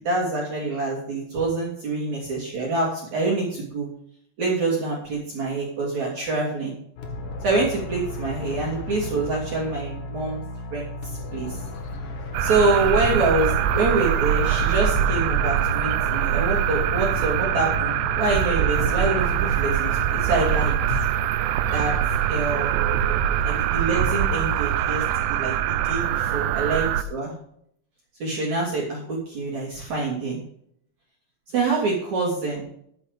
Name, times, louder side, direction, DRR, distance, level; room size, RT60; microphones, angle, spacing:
voice 1, 0.0-3.9 4.4-6.8 7.4-10.4 10.7-10.9 11.3-11.5 12.4-21.0 21.7-21.9 22.3-22.8 23.7-25.0 25.3-27.3 28.2-30.4 31.5-32.7, right 3 dB, 45° right, -3 dB, 3.5 m, -26 dB
sound 1, 7.0-20.6, left 2 dB, 55° left, 2.4 m, -34 dB
sound 2, 12.3-27.0, right 10 dB, 80° right, 2.6 m, -23 dB
13.5 x 8.1 x 5.1 m, 0.68 s
omnidirectional pair, 5.3 m